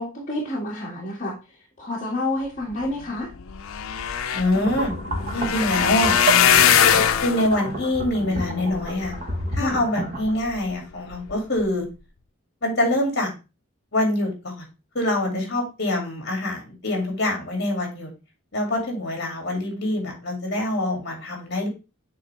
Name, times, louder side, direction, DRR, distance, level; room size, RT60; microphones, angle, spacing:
voice 1, 0.0-1.3 1.8-3.3 9.6-9.8 15.3-15.5, left 1 dB, 40° left, -6 dB, 1.8 m, -29 dB
sound 1, 3.0-3.1 3.3-9.7 10.3-10.7 11.1-11.3 11.6-11.7, left 8 dB, 80° left, 0.5 m, -22 dB
voice 2, 4.3-4.9 5.3-6.6 7.2-9.1 9.5-11.8 12.6-13.3 13.9-14.6 14.9-18.1 18.5-21.7, left 1 dB, 55° left, 1 dB, 2.3 m, -25 dB
sound 2, 4.5-10.3, right 1 dB, 35° right, 1.2 m, -31 dB
8.4 x 3.7 x 3.2 m, 0.29 s
head